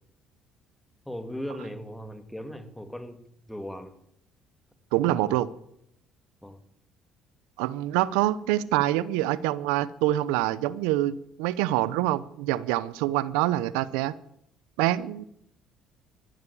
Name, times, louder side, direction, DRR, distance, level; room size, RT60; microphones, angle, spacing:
voice 1, 1.1-4.0 5.0-5.4 6.4-6.6, equal, 5° left, 2.4 m, -38 dB
voice 2, 4.9-5.5 7.6-14.1 14.8-15.2, right 15 dB, 85° right, 0.6 m, -25 dB
14.5 x 12.0 x 8.5 m
supercardioid pair, 70°, 0 cm